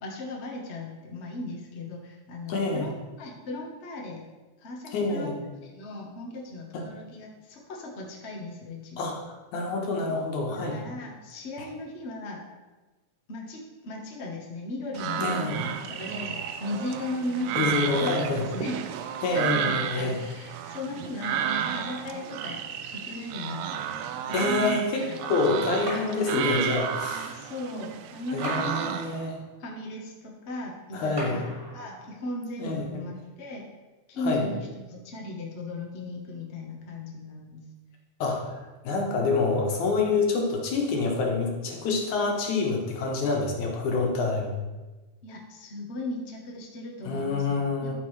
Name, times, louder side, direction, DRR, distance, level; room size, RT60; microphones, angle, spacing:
voice 1, 0.0-4.2 4.6-5.3 5.6-9.1 10.1-10.3 10.6-12.4 13.3-21.4 21.7-22.6 23.0-23.8 24.3-25.2 27.3-29.0 29.6-31.5 31.7-33.7 34.1-37.6 40.2-40.3 43.5-43.6 45.2-47.9, left 2 dB, 55° left, 0 dB, 0.7 m, -37 dB
voice 2, 2.5-2.9 4.9-5.4 6.7-6.8 9.0-9.2 9.5-10.9 15.2-15.6 17.6-18.5 19.2-20.2 24.3-27.4 28.3-29.4 30.9-31.5 32.6-33.0 34.2-34.5 38.2-38.6 38.8-44.5 47.0-47.9, left 3 dB, 80° left, 0 dB, 2.7 m, -27 dB
sound 1, 15.0-29.2, right 9 dB, 80° right, 1.9 m, -32 dB
sound 2, 25.9-27.0 28.4-29.6 31.2-32.2, equal, 20° right, 2.5 m, -39 dB
13.0 x 5.3 x 3.2 m, 1.2 s
omnidirectional pair, 3.3 m